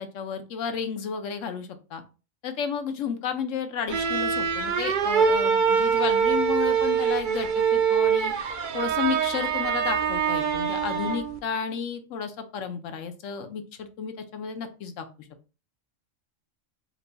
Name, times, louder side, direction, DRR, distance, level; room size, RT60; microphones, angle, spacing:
voice 1, 0.0-2.0 2.4-8.3 8.7-15.3, left 6 dB, 85° left, 8 dB, 1.0 m, -32 dB
sound 1, 3.9-11.4, right 6 dB, 55° right, 0.6 m, -24 dB
4.6 x 3.9 x 2.2 m, 0.33 s
omnidirectional pair, 1.3 m